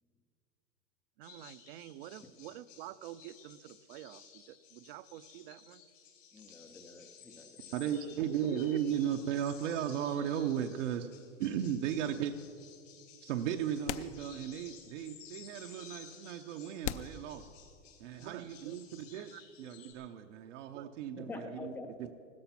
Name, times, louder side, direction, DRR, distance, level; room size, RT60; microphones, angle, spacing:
sound 1, 1.2-19.9, left 7 dB, 90° left, 3.7 m, -56 dB
voice 1, 1.2-5.8 8.7-8.8 12.1-12.2 18.2-18.8 19.3-19.4 20.7-20.9, right 14 dB, 50° right, 17 dB, 0.5 m, -48 dB
voice 2, 6.3-7.8 18.4-18.5 21.2-22.1, left 3 dB, 5° left, 6 dB, 0.3 m, -47 dB
voice 3, 7.7-11.1 11.4-12.3 13.2-17.5 18.0-21.7 22.0-22.1, right 9 dB, 70° right, 4 dB, 0.9 m, -36 dB
sound 2, 13.2-13.3 13.8-14.8 15.1-15.2 15.9-16.0 16.8-18.1, left 11 dB, 65° left, 0.7 m, -41 dB
15.5 x 13.5 x 5.7 m, 2.3 s
supercardioid pair, 150°, 37 cm